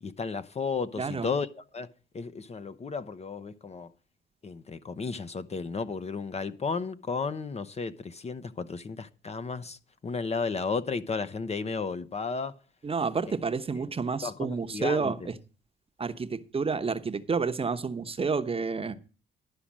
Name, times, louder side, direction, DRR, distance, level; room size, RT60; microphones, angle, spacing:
voice 1, 0.0-1.9 2.1-3.9 4.4-12.6 13.8-13.9 14.2-15.3, left 4 dB, 35° left, 0.7 m, -33 dB
voice 2, 1.0-1.3 12.8-15.2 16.0-18.9, right 4 dB, 30° right, 0.9 m, -29 dB
11.5 x 5.0 x 7.3 m
cardioid pair, 90°, 20 cm